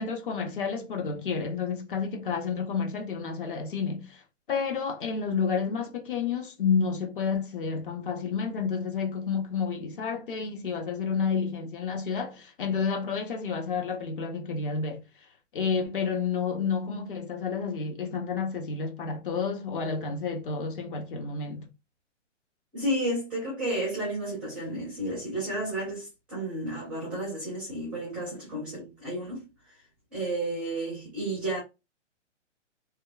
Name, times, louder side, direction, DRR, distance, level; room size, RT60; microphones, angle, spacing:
voice 1, 0.0-4.2 4.5-15.0 15.5-21.7, left 5 dB, 45° left, 0.7 m, -30 dB
voice 2, 22.7-29.5 30.1-31.6, right 1 dB, 5° right, 0.4 m, -32 dB
2.8 x 2.2 x 2.3 m
hypercardioid pair, 140°, 37 cm